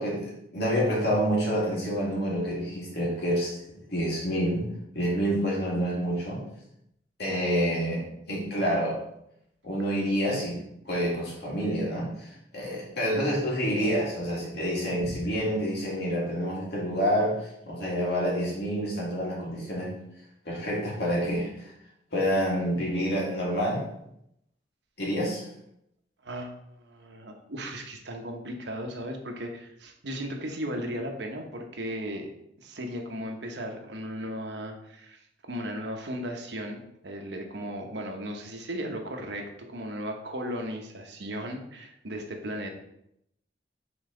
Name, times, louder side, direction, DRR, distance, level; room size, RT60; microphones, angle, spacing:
voice 1, 0.0-4.7 4.9-6.4 7.2-9.0 9.6-10.6 10.9-12.3 12.5-19.9 20.5-21.7 22.1-23.8 25.0-25.4, equal, 65° left, -4 dB, 2.3 m, -28 dB
voice 2, 26.2-32.3 32.6-42.7, equal, 70° right, 3 dB, 1.0 m, -36 dB
7.2 x 4.0 x 3.8 m, 0.78 s
head